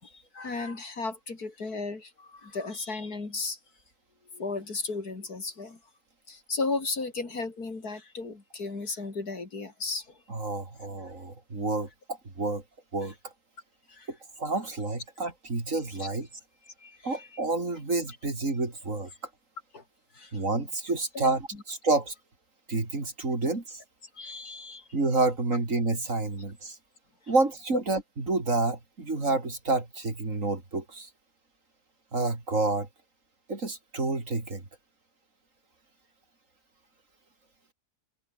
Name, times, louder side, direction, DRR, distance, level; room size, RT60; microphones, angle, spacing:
voice 1, 0.0-3.6 4.3-5.8 6.3-10.2 13.9-14.1 16.0-16.1 16.8-17.3 19.7-19.8 20.1-20.3 21.1-21.3 24.2-24.9, left 3 dB, 80° left, 4.3 m, -35 dB
voice 2, 10.3-12.6 12.9-13.3 14.1-16.3 17.0-19.1 20.3-22.1 22.7-23.8 24.9-26.8 27.3-31.1 32.1-32.9 33.5-34.6, right 3 dB, 55° right, 4.2 m, -29 dB
omnidirectional pair, 1.6 m